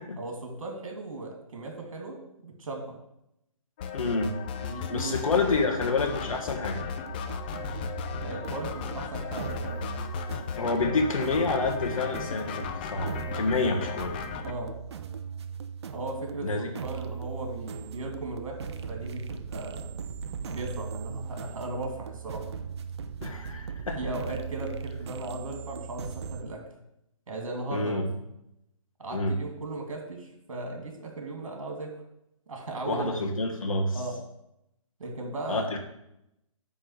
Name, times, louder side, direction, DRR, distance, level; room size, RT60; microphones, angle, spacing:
voice 1, 0.2-2.2 2.4-3.0 4.6-5.2 5.5-5.6 8.2-10.0 13.5-13.7 14.4-14.7 15.9-20.1 20.5-22.5 24.0-26.6 27.3-28.3 29.0-31.9 32.5-33.2 33.9-34.2 35.0-35.7, right 2 dB, 65° right, 2 dB, 2.6 m, -37 dB
sound 1, 3.8-14.5, left 7 dB, 15° left, 0.4 m, -36 dB
voice 2, 3.9-4.4 4.9-6.8 10.6-14.2 16.4-16.7 23.2-24.0 27.7-28.1 29.1-29.4 32.8-34.0 35.5-35.8, left 3 dB, 75° left, 1 dB, 1.4 m, -28 dB
sound 2, 7.0-26.4, right 6 dB, 50° right, 0.7 m, -39 dB
8.9 x 3.7 x 6.5 m, 0.82 s
hypercardioid pair, 150°, 18 cm